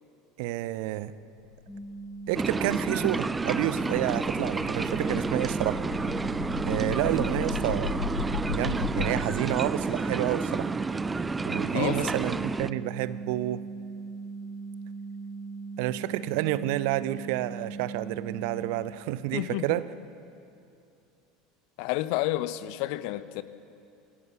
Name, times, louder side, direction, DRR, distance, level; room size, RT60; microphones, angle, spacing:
voice 1, 0.4-1.1 2.3-5.8 6.7-8.0 8.5-10.7 11.4-13.6 15.8-19.9, right 15 dB, 60° right, 16 dB, 0.7 m, -29 dB
sound 1, 1.1-9.1, left 6 dB, 80° left, 1.4 m, -37 dB
sound 2, 1.7-18.7, right 4 dB, 10° left, 6.3 m, -39 dB
sound 3, 2.3-12.7, right 3 dB, 15° right, 0.6 m, -30 dB
voice 2, 19.3-19.8 21.8-23.4, left 16 dB, 55° left, 15 dB, 0.8 m, -30 dB
26.5 x 13.5 x 9.7 m, 2.6 s
figure-of-eight pair, 75°, 0 cm